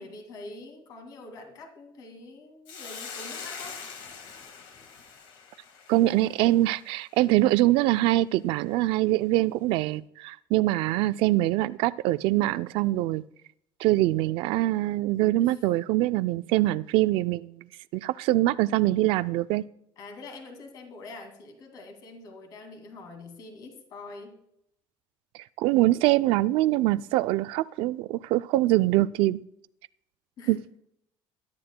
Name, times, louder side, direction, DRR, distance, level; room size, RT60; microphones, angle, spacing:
voice 1, 0.0-3.8 15.4-15.6 20.0-24.4 30.4-30.7, left 2 dB, 45° left, 4 dB, 2.2 m, -45 dB
Hiss, 2.7-7.2, left 6 dB, 60° left, 1.8 m, -43 dB
voice 2, 5.9-13.2 13.8-17.7 17.9-19.6 25.6-29.4 30.5-30.6, right 16 dB, 70° right, 15 dB, 0.4 m, -24 dB
21.5 x 12.0 x 2.2 m, 0.76 s
cardioid pair, 175°, 9 cm